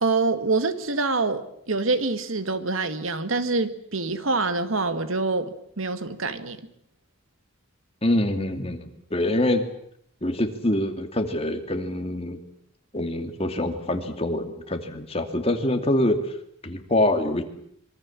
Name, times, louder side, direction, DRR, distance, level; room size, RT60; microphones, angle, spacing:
voice 1, 0.0-6.6, right 3 dB, 85° right, 1.9 m, -26 dB
voice 2, 8.0-9.6 10.2-12.4 12.9-16.2 16.6-17.4, left 1 dB, 30° left, 2.7 m, -25 dB
25.5 x 24.0 x 7.4 m
head